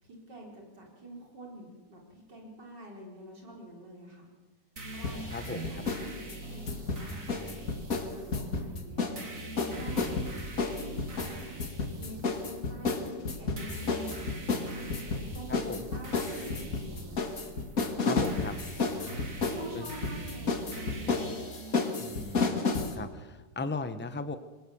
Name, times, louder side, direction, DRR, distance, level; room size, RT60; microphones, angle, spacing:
voice 1, 0.0-4.2 4.9-5.2 5.5-7.7 8.1-14.3 14.7-17.2 18.9-21.2, right 1 dB, 70° right, -1 dB, 4.9 m, -46 dB
sound 1, 4.8-22.4, right 2 dB, 45° right, 3.3 m, -44 dB
sound 2, 5.0-6.0 6.3-9.2 9.6-22.9, left 4 dB, 50° left, 2.3 m, -31 dB
voice 2, 5.3-5.7 15.5-15.9 18.0-18.6 19.7-19.9 22.0-24.4, left 3 dB, 15° left, 11 dB, 0.3 m, -37 dB
22.5 x 19.0 x 7.1 m, 1.3 s
omnidirectional pair, 1.9 m